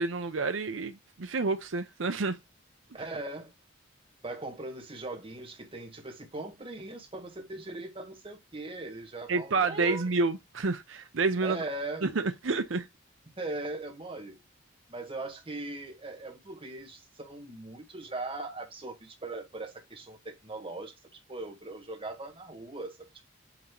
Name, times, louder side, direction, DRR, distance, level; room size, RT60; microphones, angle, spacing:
voice 1, 0.0-2.4 9.3-11.6 12.0-12.9, right 3 dB, 70° right, 0.7 m, -29 dB
voice 2, 2.9-3.5 4.2-10.1 11.4-12.1 13.4-14.4 14.9-23.3, right 2 dB, 25° right, 1.8 m, -40 dB
8.9 x 3.0 x 3.9 m
head